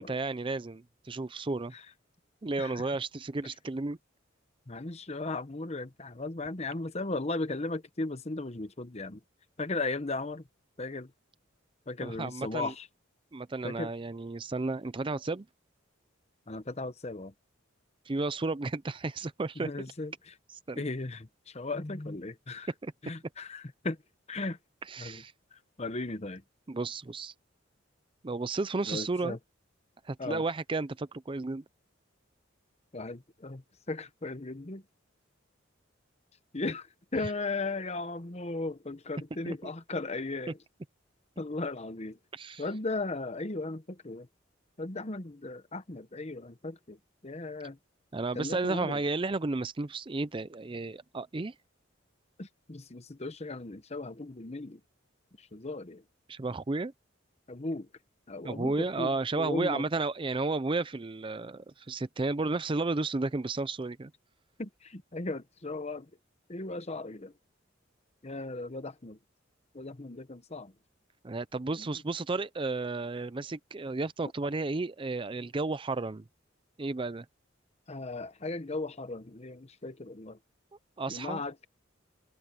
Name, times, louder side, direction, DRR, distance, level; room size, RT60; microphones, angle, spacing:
voice 1, 0.0-1.7 2.4-4.0 12.0-12.7 13.3-15.5 18.1-19.7 20.7-20.8 22.8-22.9 24.9-25.3 26.7-27.3 28.2-29.4 30.0-31.6 37.2-37.3 39.5-39.6 42.3-42.6 48.1-51.5 56.3-56.9 58.4-64.1 71.2-76.2 76.8-77.3 81.0-81.4, right 3 dB, 25° right, 0.5 m, -33 dB
voice 2, 4.7-9.2 9.6-10.4 10.8-11.1 11.9-12.9 13.6-13.9 16.5-17.3 19.6-20.3 20.8-22.7 23.0-24.0 24.3-24.6 25.0-25.2 25.5-26.4 28.9-29.4 30.2-30.4 32.9-33.6 33.9-34.8 36.5-36.9 37.1-40.6 41.4-42.2 42.6-44.3 44.8-47.0 47.2-47.8 48.3-49.0 52.4-54.8 55.4-56.0 57.5-57.9 58.3-59.8 64.6-66.1 66.5-67.3 68.2-69.2 69.7-70.7 71.8-71.9 77.9-80.4 81.1-81.7, left 2 dB, 35° left, 1.0 m, -36 dB
head